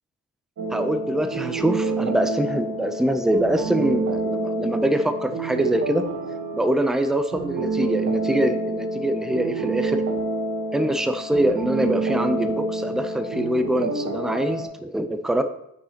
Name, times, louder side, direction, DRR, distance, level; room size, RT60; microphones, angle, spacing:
sound 1, 0.6-14.7, right 3 dB, 65° right, 1.1 m, -28 dB
voice 1, 0.7-6.1 6.5-10.0 10.7-15.4, right 1 dB, ahead, 8 dB, 0.5 m, -24 dB
9.1 x 6.4 x 2.8 m, 0.79 s
wide cardioid pair, 120°, 31 cm